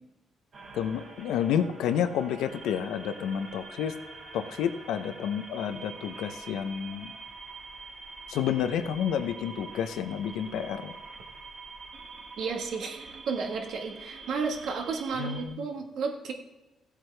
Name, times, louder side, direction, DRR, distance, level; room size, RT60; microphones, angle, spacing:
sound 1, 0.5-15.5, right 3 dB, 55° right, 1.7 m, -45 dB
voice 1, 0.7-4.0 4.3-7.1 8.3-10.9 15.2-15.7, left 8 dB, 90° left, 10 dB, 0.6 m, -30 dB
voice 2, 12.4-16.3, right 5 dB, 75° right, 3 dB, 1.5 m, -32 dB
15.0 x 8.2 x 3.3 m, 1.1 s
cardioid pair, 90°, 0 cm